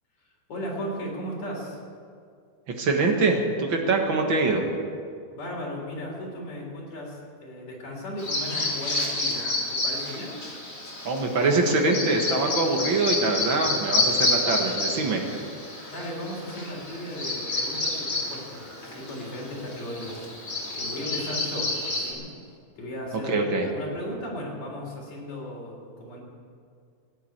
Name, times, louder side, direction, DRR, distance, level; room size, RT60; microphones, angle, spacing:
voice 1, 0.5-1.8 5.3-10.4 15.9-22.3 22.8-26.2, left 1 dB, 65° left, -2 dB, 5.0 m, -36 dB
voice 2, 2.8-4.6 11.0-15.2 23.3-23.7, right 3 dB, 45° right, 2 dB, 1.9 m, -24 dB
Bird vocalization bird call bird song, 8.2-22.1, left 2 dB, 25° left, 3.5 m, -29 dB
16.0 x 9.7 x 8.6 m, 2.2 s
omnidirectional pair, 3.5 m